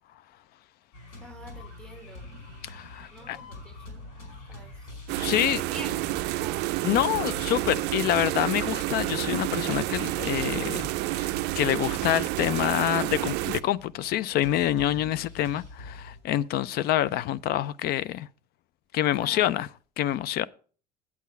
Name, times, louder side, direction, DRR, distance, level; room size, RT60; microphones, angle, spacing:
sound 1, 0.9-16.2, left 2 dB, 70° left, 4.7 m, -46 dB
voice 1, 1.2-2.3 3.1-4.1 4.5-5.0 5.4-7.1 15.0-15.2 19.2-19.7, right 1 dB, 5° left, 1.2 m, -46 dB
voice 2, 2.7-3.4 5.2-5.6 6.8-18.3 18.9-19.7 20.0-20.5, left 13 dB, 50° left, 0.4 m, -27 dB
sound 2, 5.1-13.6, right 18 dB, 55° right, 0.4 m, -29 dB
8.3 x 7.3 x 5.4 m
hypercardioid pair, 70°, 21 cm